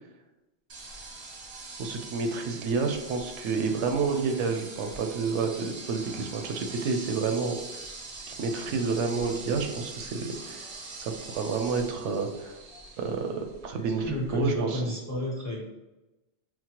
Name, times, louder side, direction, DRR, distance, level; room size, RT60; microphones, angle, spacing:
sound 1, 0.7-14.6, right 3 dB, 50° right, 0.5 m, -43 dB
voice 1, 1.8-7.8 8.1-10.6 11.0-12.5 13.0-14.0 14.3-14.8, right 4 dB, 80° right, 5 dB, 0.9 m, -29 dB
voice 2, 13.8-15.6, left 1 dB, 25° left, -3 dB, 0.4 m, -32 dB
4.4 x 2.1 x 2.9 m, 1.0 s
omnidirectional pair, 1.2 m